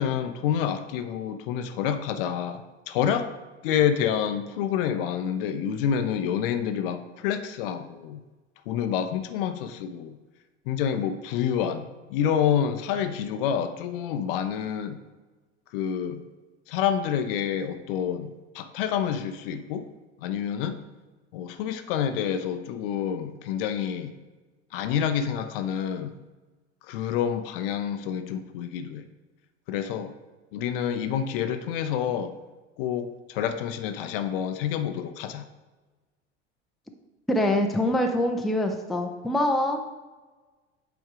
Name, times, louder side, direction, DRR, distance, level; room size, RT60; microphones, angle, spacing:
voice 1, 0.0-3.3 3.6-8.2 8.7-10.2 10.7-15.0 15.7-16.2 16.7-19.9 20.2-20.8 21.3-24.1 24.7-26.1 26.8-29.0 29.7-30.1 30.5-32.3 32.8-35.4, left 8 dB, 50° left, 10 dB, 0.6 m, -28 dB
voice 2, 37.3-39.8, left 1 dB, ahead, 3 dB, 0.5 m, -24 dB
8.1 x 3.5 x 4.8 m, 1.2 s
figure-of-eight pair, 75°, 36 cm